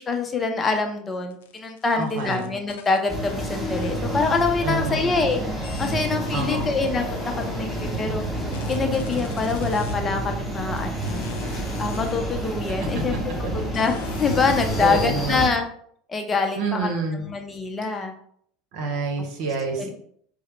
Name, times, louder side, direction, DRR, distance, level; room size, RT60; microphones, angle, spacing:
voice 1, 0.0-7.1 7.4-8.2 8.7-11.2 11.5-15.6 16.1-18.1 19.8-19.9, left 4 dB, 25° left, 4 dB, 0.6 m, -25 dB
sound 1, 1.3-4.4 4.7-8.0 8.5-9.9 10.8-12.2 12.8-12.9 13.7-15.1, left 9 dB, 75° left, 0.4 m, -41 dB
voice 2, 1.9-2.5 4.6-5.0 6.3-6.7 13.4-13.5 14.8-15.4 16.6-17.2 18.7-19.9, right 3 dB, 60° right, 2 dB, 1.0 m, -27 dB
sound 2, 3.1-15.5, right 1 dB, 5° left, 1.0 m, -29 dB
4.7 x 2.1 x 3.2 m, 0.63 s
hypercardioid pair, 80°, 0 cm